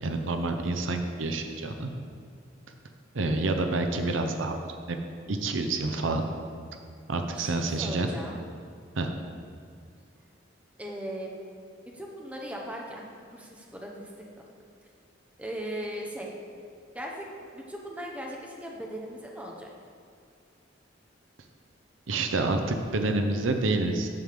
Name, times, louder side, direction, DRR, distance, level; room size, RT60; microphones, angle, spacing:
voice 1, 0.0-1.9 3.1-4.6 4.9-5.0 5.3-6.2 7.1-8.1 9.0-9.1 22.1-24.2, right 2 dB, 85° right, 5 dB, 0.7 m, -28 dB
voice 2, 7.3-8.4 10.8-11.3 11.9-13.1 13.3-14.4 15.4-16.3 16.9-19.7, equal, 5° right, -1 dB, 0.9 m, -38 dB
9.4 x 3.6 x 6.7 m, 2.3 s
head